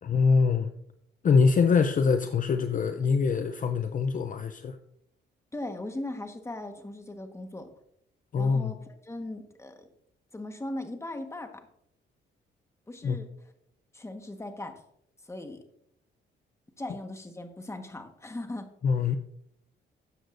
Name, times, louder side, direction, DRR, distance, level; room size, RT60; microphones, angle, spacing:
voice 1, 0.0-0.7 1.2-4.8 8.3-8.7 13.0-13.2 18.8-19.2, left 5 dB, 40° left, 8 dB, 0.6 m, -24 dB
voice 2, 5.5-7.7 8.3-9.9 10.3-11.5 12.9-13.3 13.9-14.8 15.3-15.6 16.8-18.7, left 1 dB, 15° left, 6 dB, 1.4 m, -38 dB
12.5 x 7.8 x 2.6 m, 0.72 s
cardioid pair, 90°, 20 cm